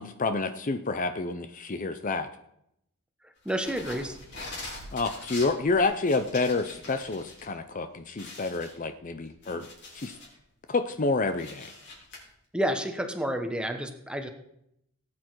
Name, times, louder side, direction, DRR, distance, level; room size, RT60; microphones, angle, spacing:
voice 1, 0.0-2.3 4.9-9.7 9.9-10.1 10.7-11.7, left 3 dB, 40° left, 9 dB, 0.6 m, -28 dB
voice 2, 3.4-4.2 12.5-14.3, equal, 5° right, 6 dB, 1.1 m, -30 dB
sound 1, 3.5-7.4 7.8-7.9 8.2-10.4 10.8-12.2, left 2 dB, 55° left, 4.1 m, -43 dB
18.0 x 8.7 x 4.7 m, 0.78 s
head